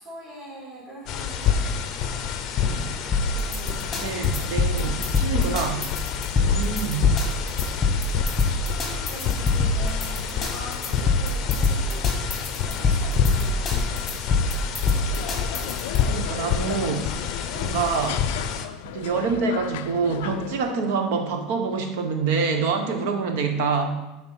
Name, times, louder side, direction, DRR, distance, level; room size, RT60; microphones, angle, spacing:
voice 1, 0.0-1.8 2.1-2.4 3.3-4.0 4.6-5.6 6.3-6.7 8.4-12.3 12.6-14.2, right 1 dB, 30° right, -8 dB, 2.3 m, -43 dB
sound 1, 1.1-18.7, left 7 dB, 35° left, 0.6 m, -28 dB
voice 2, 2.6-2.9 4.0-5.9 6.3-7.1 16.1-17.1 17.5-18.3 18.8-24.0, right 5 dB, 65° right, 5 dB, 1.1 m, -26 dB
uncl-fonk, 3.1-16.0, left 3 dB, 10° left, 1.1 m, -24 dB
sound 2, 15.1-20.7, left 12 dB, 75° left, 0.3 m, -35 dB
10.5 x 3.8 x 5.8 m, 1.0 s
cardioid pair, 180°, 0 cm